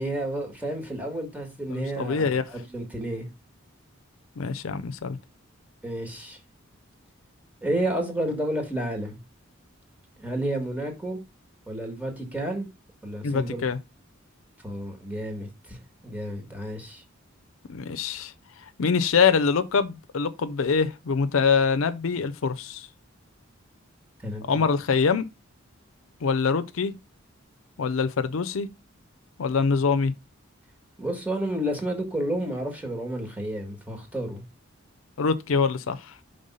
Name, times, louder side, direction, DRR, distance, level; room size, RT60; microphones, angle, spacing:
voice 1, 0.0-3.2 5.8-6.4 7.6-9.2 10.2-11.2 11.7-12.7 13.0-13.7 14.6-15.8 16.0-17.0 24.2-24.6 31.0-34.4, right 1 dB, 10° right, 1.5 m, -31 dB
voice 2, 1.7-2.4 4.4-5.2 13.2-13.8 17.7-18.3 18.8-22.9 24.5-25.2 26.2-26.9 27.8-28.7 29.4-30.1 35.2-36.1, left 5 dB, 75° left, 0.5 m, -24 dB
5.3 x 3.5 x 5.4 m
head